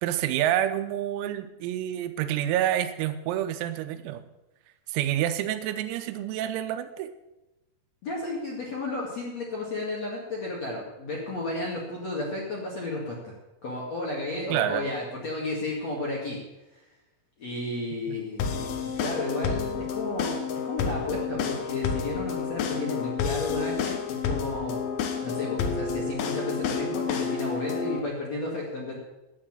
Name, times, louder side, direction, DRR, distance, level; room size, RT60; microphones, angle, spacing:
voice 1, 0.0-4.2 4.9-7.1 14.5-14.9 18.1-18.2, right 11 dB, 90° right, 10 dB, 3.6 m, -28 dB
voice 2, 8.0-13.3 13.6-16.4 16.7-16.8 17.4-24.8 25.2-28.9, left 2 dB, 50° left, -3 dB, 2.2 m, -33 dB
sound 1, 18.4-28.0, left 6 dB, 85° left, 2.1 m, -30 dB
11.5 x 9.0 x 7.3 m, 0.99 s
omnidirectional pair, 6.0 m